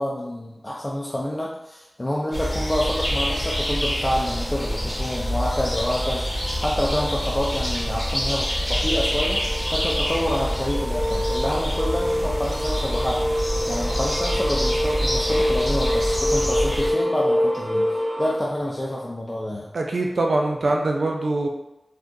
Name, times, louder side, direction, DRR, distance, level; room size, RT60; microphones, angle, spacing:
voice 1, 0.0-9.4 9.7-13.3 13.7-19.7, left 1 dB, 25° left, -4 dB, 0.5 m, -28 dB
sound 1, 2.3-16.9, equal, 10° left, 1.1 m, -26 dB
sound 2, 8.0-8.1 8.5-18.4, equal, 10° right, 0.7 m, -26 dB
voice 2, 19.7-21.5, right 2 dB, 85° right, 1 dB, 0.4 m, -23 dB
3.6 x 2.4 x 2.7 m, 0.93 s
cardioid pair, 45°, 0 cm